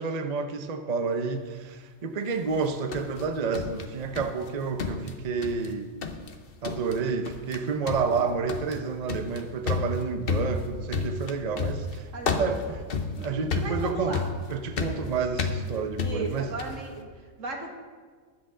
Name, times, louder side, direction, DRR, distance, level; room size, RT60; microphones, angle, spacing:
voice 1, 0.0-5.9 6.6-12.1 12.4-12.8 13.2-14.2 14.5-16.5, right 5 dB, 40° right, 7 dB, 0.7 m, -30 dB
sound 1, 2.5-4.5 4.8-5.7 6.0-6.4 6.6-7.0 7.3-7.6 7.9-16.9, left 4 dB, 50° left, 1.0 m, -32 dB
voice 2, 12.1-12.8 13.2-13.3 13.6-14.3 16.0-17.8, right 3 dB, 80° right, 2 dB, 1.9 m, -36 dB
20.5 x 7.9 x 3.8 m, 1.5 s
omnidirectional pair, 1.3 m